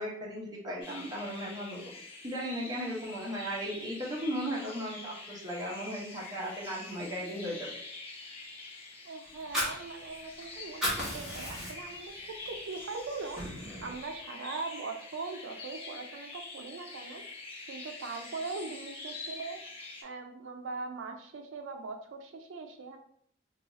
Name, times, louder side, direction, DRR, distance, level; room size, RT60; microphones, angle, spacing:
voice 1, 0.0-1.8 2.2-7.7, equal, 20° right, -4 dB, 0.8 m, -36 dB
sound 1, 0.8-20.0, left 3 dB, 30° left, 0.7 m, -46 dB
voice 2, 9.0-13.4 13.8-17.2 17.7-19.6 20.0-23.0, right 4 dB, 85° right, 5 dB, 0.4 m, -40 dB
Fire, 9.3-10.4 10.7-12.0 12.4-12.6 13.0-14.0, equal, 5° right, 1.1 m, -34 dB
2.7 x 2.3 x 3.9 m, 0.65 s
head